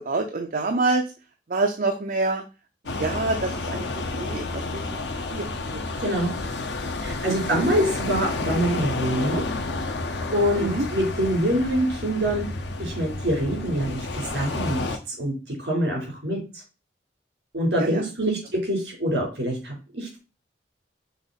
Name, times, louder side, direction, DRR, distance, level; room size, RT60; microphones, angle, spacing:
voice 1, 0.1-1.0 1.5-2.4 3.0-3.9 4.1-5.0 5.3-5.5 5.7-5.8 7.3-7.6 10.6-10.8 17.8-18.0, right 3 dB, 50° right, 4 dB, 0.6 m, -26 dB
sound 1, 2.9-15.0, left 3 dB, 85° left, 0.8 m, -30 dB
voice 2, 6.0-6.3 7.0-9.4 10.3-12.5 12.8-14.1 14.3-15.3 15.6-16.4 17.5-20.2, equal, 70° right, 0 dB, 3.7 m, -25 dB
5.9 x 4.0 x 4.1 m, 0.31 s
head